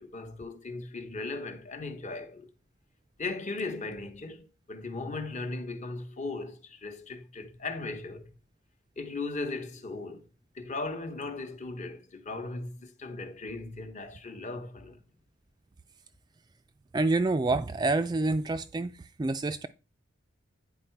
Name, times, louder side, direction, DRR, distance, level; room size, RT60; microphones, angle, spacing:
voice 1, 0.0-2.5 3.2-8.3 9.0-10.3 10.5-15.0, left 3 dB, 35° left, 1.0 m, -37 dB
voice 2, 16.9-18.9 19.2-19.7, right 2 dB, 20° right, 0.3 m, -27 dB
9.2 x 4.6 x 4.5 m
head